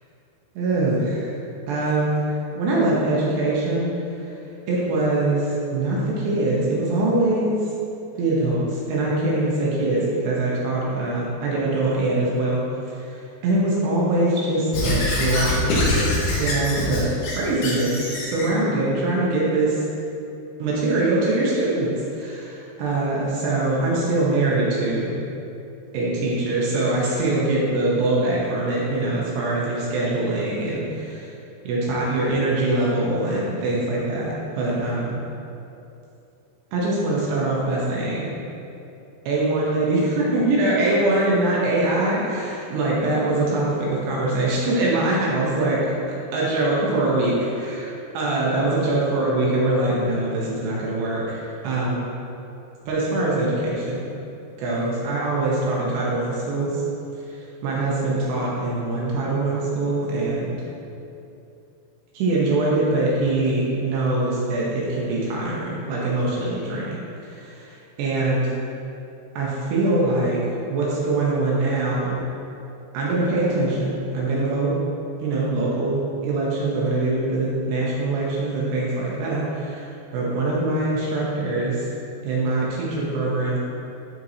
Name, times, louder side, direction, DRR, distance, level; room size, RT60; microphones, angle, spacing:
voice 1, 0.6-1.3 1.7-3.9 4.7-7.6 8.2-12.6 12.9-13.1 13.4-19.8 20.6-21.9 22.2-25.2 25.9-31.3 31.6-35.2 36.7-38.3 39.3-45.8 46.3-47.3 47.6-47.8 48.1-52.1 52.8-54.1 54.6-56.7 57.3-60.6 62.1-68.5 69.4-70.4 70.7-72.2 72.9-74.7 75.2-81.9 82.2-83.6, right 2 dB, 75° right, -5 dB, 3.0 m, -23 dB
Squeak / Writing, 14.7-18.5, left 1 dB, 65° left, 2.9 m, -24 dB
12.0 x 4.6 x 2.8 m, 2.8 s
omnidirectional pair, 5.2 m